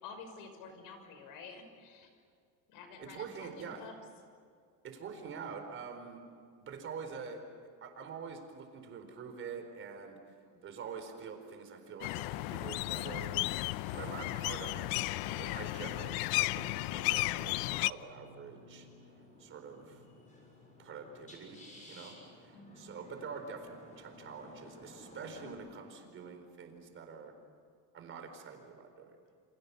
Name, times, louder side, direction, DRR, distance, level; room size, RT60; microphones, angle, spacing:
voice 1, 0.0-2.1 2.7-3.9 10.4-10.7 22.5-22.9, left 5 dB, 65° left, 7 dB, 6.0 m, -50 dB
voice 2, 3.0-3.9 4.8-6.2 6.6-7.4 7.8-10.2 10.6-13.5 13.9-18.9 19.4-20.0 20.8-27.3 27.9-29.2, right 5 dB, 35° right, 5 dB, 4.4 m, -46 dB
sound 1, 12.0-17.9, left 19 dB, 85° left, 0.7 m, -34 dB
sound 2, 14.8-25.5, left 1 dB, 20° left, 7.0 m, -56 dB
29.5 x 28.0 x 7.0 m, 2.2 s
cardioid pair, 165°, 35 cm